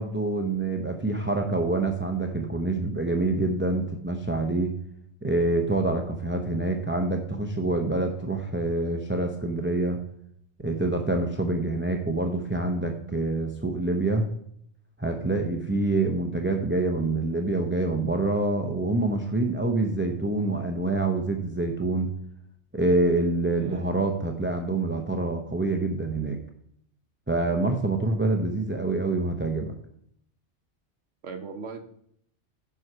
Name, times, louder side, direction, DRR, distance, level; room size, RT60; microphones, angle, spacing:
voice 1, 0.0-4.7 5.2-10.0 10.6-14.3 15.0-22.1 22.7-26.4 27.3-29.7, right 2 dB, 10° right, 4 dB, 0.6 m, -26 dB
voice 2, 23.6-24.0 31.2-31.8, right 5 dB, 80° right, 7 dB, 1.2 m, -38 dB
10.5 x 4.8 x 5.6 m, 0.69 s
omnidirectional pair, 1.2 m